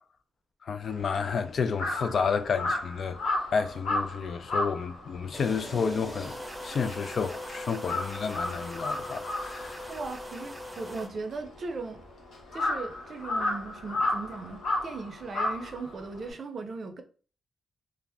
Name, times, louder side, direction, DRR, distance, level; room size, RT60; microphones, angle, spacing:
voice 1, 0.6-6.4 6.6-9.9, left 5 dB, 60° left, 0.3 m, -31 dB
Crow, 0.8-7.4 7.7-16.3, left 2 dB, 75° left, 0.8 m, -33 dB
sound 1, 5.3-11.1, equal, 5° right, 0.6 m, -40 dB
voice 2, 9.9-12.0 12.5-17.0, right 3 dB, 50° right, 0.5 m, -38 dB
2.6 x 2.0 x 3.4 m
cardioid pair, 90°, 0 cm